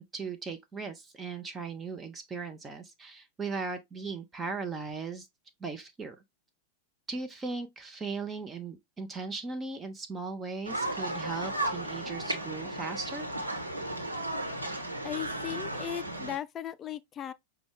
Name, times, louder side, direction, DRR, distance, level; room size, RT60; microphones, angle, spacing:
voice 1, 0.0-5.3 5.6-6.2 7.1-13.3, right 4 dB, 20° right, 0.6 m, -38 dB
sound 1, 10.6-16.4, right 1 dB, 85° right, 1.1 m, -34 dB
voice 2, 15.0-17.3, left 11 dB, 25° left, 0.3 m, -37 dB
6.0 x 2.3 x 3.5 m
figure-of-eight pair, 90°, 0 cm